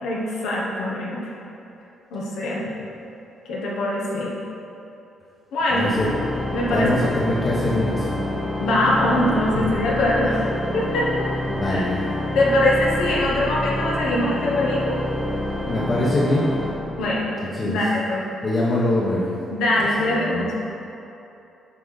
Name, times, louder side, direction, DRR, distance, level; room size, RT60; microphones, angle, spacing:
voice 1, 0.0-1.2 2.1-2.6 3.4-4.4 5.5-5.9 6.5-7.0 8.6-10.5 10.7-11.3 11.6-11.8 12.3-15.0 17.0-17.3 17.6-18.2 19.5-20.6, left 1 dB, 85° left, -4 dB, 1.3 m, -22 dB
voice 2, 5.7-6.1 6.7-8.3 9.5-9.7 11.5-12.0 15.6-16.5 17.4-17.8 18.4-19.3 20.0-20.5, left 1 dB, 45° left, -6 dB, 1.2 m, -23 dB
Organ, 5.7-17.6, left 1 dB, 10° left, 0.8 m, -28 dB
8.2 x 4.9 x 4.2 m, 2.9 s
cardioid pair, 90°, 0 cm